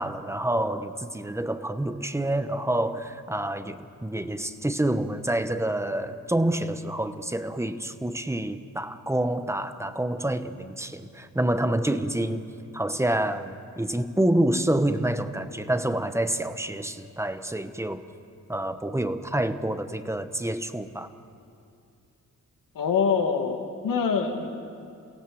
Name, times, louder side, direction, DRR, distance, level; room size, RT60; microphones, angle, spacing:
voice 1, 0.0-12.5 12.7-18.0 18.5-21.1, right 1 dB, 10° right, 10 dB, 1.1 m, -27 dB
voice 2, 22.7-24.5, left 6 dB, 80° left, 4 dB, 2.2 m, -25 dB
29.0 x 17.0 x 7.8 m, 2.5 s
cardioid pair, 90°, 32 cm